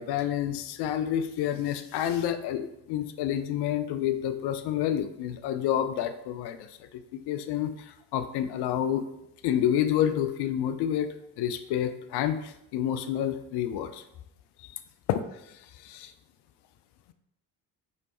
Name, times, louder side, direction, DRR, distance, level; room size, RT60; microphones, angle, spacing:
voice 1, 0.0-6.7 7.1-9.0 9.4-14.0 14.6-14.8 15.1-15.2 15.8-16.1, left 10 dB, 60° left, 10 dB, 0.5 m, -29 dB
4.1 x 3.1 x 3.0 m, 0.82 s
hypercardioid pair, 40°, 46 cm